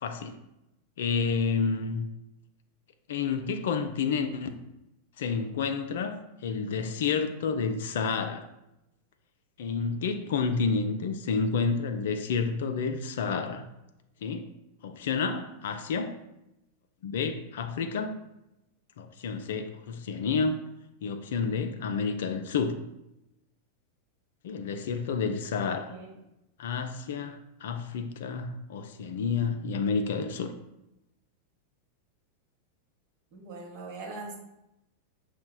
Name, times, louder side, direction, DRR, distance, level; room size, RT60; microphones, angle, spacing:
voice 1, 0.0-0.4 1.0-2.1 3.1-4.5 5.2-8.5 9.6-13.6 14.2-14.5 14.8-16.2 17.0-18.2 19.0-20.6 21.0-22.8 24.4-25.9 26.6-30.5, left 5 dB, 55° left, 7 dB, 0.3 m, -30 dB
voice 2, 33.3-34.4, right 3 dB, 40° right, 0 dB, 0.8 m, -41 dB
6.4 x 2.1 x 2.2 m, 0.90 s
figure-of-eight pair, 90°, 0 cm